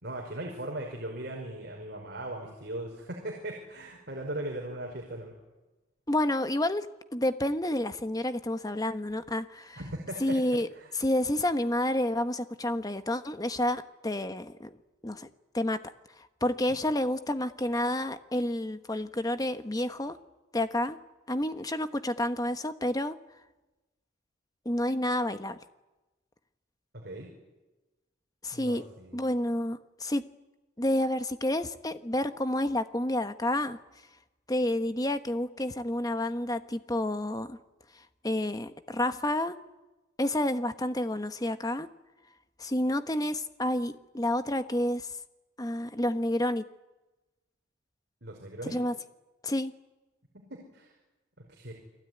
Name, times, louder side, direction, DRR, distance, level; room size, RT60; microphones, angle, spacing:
voice 1, 0.0-5.3 9.8-10.4 10.7-10.9 27.0-27.3 28.5-29.2 48.2-48.8 50.3-50.9 51.4-51.7, right 1 dB, 55° right, 0 dB, 5.2 m, -39 dB
voice 2, 6.1-6.9 7.1-9.8 10.2-10.7 10.9-14.7 15.0-15.8 16.4-20.2 20.5-21.0 21.3-23.2 24.6-25.6 28.4-28.8 29.1-30.3 30.8-33.8 34.5-37.6 38.2-39.6 40.2-41.9 42.6-45.1 45.6-46.6 48.6-49.0 49.4-49.7, left 1 dB, 20° left, 9 dB, 1.2 m, -29 dB
29.5 x 20.0 x 9.6 m, 1.1 s
head